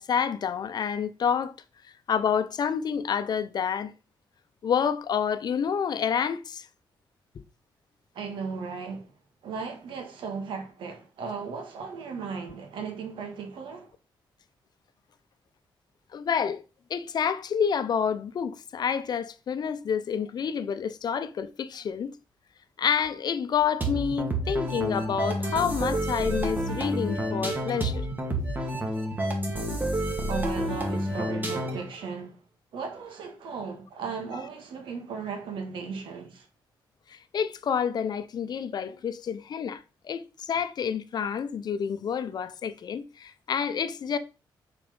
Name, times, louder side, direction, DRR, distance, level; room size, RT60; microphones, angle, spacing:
voice 1, 0.0-1.5 2.1-3.9 4.6-6.6 16.1-16.6 16.9-22.1 22.8-28.1 37.1-39.8 40.0-44.2, left 7 dB, 55° left, 0.7 m, -28 dB
voice 2, 8.2-9.1 9.4-13.9 30.3-32.3 32.7-36.4, right 5 dB, 90° right, 2.1 m, -36 dB
sound 1, 23.8-31.9, right 1 dB, 20° right, 2.2 m, -29 dB
6.8 x 5.0 x 5.4 m
cardioid pair, 115°, 8 cm